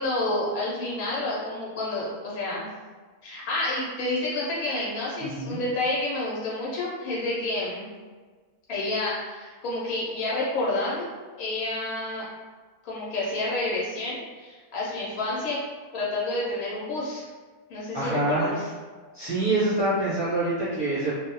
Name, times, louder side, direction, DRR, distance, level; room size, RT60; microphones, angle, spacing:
voice 1, 0.0-2.7 3.2-7.8 8.7-11.1 11.4-12.2 12.8-15.6 15.9-17.3 17.7-18.7, left 2 dB, 80° left, -6 dB, 1.1 m, -29 dB
voice 2, 5.2-5.6 17.9-18.6 19.1-21.1, right 2 dB, 30° right, -12 dB, 0.4 m, -26 dB
2.5 x 2.0 x 2.9 m, 1.4 s
omnidirectional pair, 1.6 m